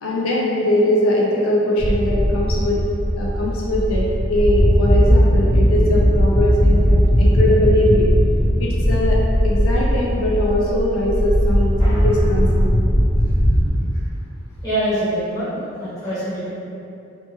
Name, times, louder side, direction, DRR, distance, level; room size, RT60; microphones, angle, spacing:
voice 1, 0.0-2.8 3.2-8.1 8.6-9.2 9.4-12.8, left 1 dB, 80° left, -3 dB, 0.4 m, -21 dB
sound 1, 1.8-13.7, equal, 15° right, 0.8 m, -17 dB
voice 2, 14.6-16.5, right 1 dB, 15° left, -14 dB, 1.0 m, -24 dB
2.7 x 2.2 x 2.9 m, 2.6 s
head